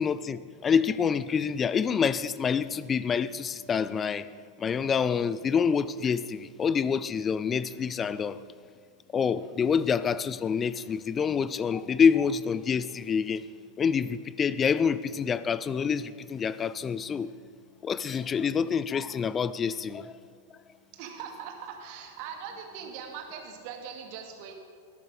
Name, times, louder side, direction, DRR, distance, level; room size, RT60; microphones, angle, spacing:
voice 1, 0.0-4.3 4.6-8.4 9.1-13.5 13.8-17.3 17.8-20.2, left 6 dB, 20° left, 0.4 m, -27 dB
voice 2, 20.9-24.5, right 7 dB, 45° right, 2.0 m, -41 dB
18.0 x 8.8 x 4.9 m
figure-of-eight pair, 90°, 0 cm